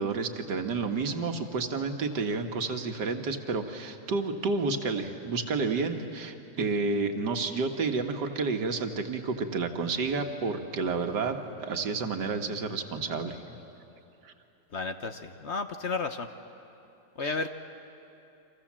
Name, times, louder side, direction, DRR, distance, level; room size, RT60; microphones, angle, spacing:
voice 1, 0.0-13.6 14.3-14.4 17.2-17.4, right 4 dB, 85° right, 5 dB, 2.1 m, -30 dB
voice 2, 14.7-16.3 17.2-17.5, left 4 dB, 50° left, 8 dB, 1.0 m, -32 dB
29.5 x 25.5 x 7.5 m, 3.0 s
omnidirectional pair, 1.8 m